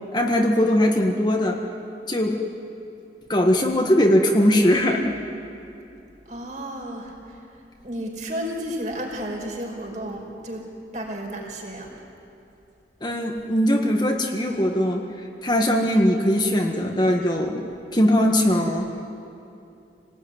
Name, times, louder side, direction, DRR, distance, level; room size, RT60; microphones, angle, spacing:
voice 1, 0.1-1.6 2.1-2.4 3.3-5.2 13.0-15.0 15.4-17.6 17.9-18.9, equal, 25° left, 1 dB, 1.6 m, -20 dB
voice 2, 6.3-7.4 7.8-10.6 10.9-11.9, equal, 45° right, 1 dB, 5.0 m, -32 dB
27.0 x 18.5 x 9.7 m, 2.7 s
head